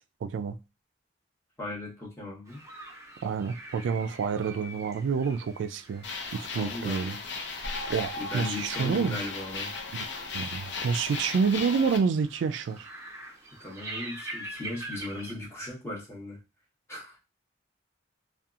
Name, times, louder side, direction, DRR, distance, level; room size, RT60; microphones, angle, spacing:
voice 1, 0.2-0.6 3.2-6.1 6.3-7.2 7.9-9.2 9.9-10.1 10.3-12.9, right 5 dB, 80° right, 0.3 m, -28 dB
voice 2, 1.6-2.6 6.5-7.2 8.2-9.7 13.6-16.4 16.9-17.2, left 2 dB, 15° left, 1.0 m, -37 dB
sound 1, 2.5-15.3, right 2 dB, 15° right, 0.5 m, -45 dB
sound 2, 6.0-12.0, left 3 dB, 70° left, 0.5 m, -36 dB
2.6 x 2.3 x 2.4 m
head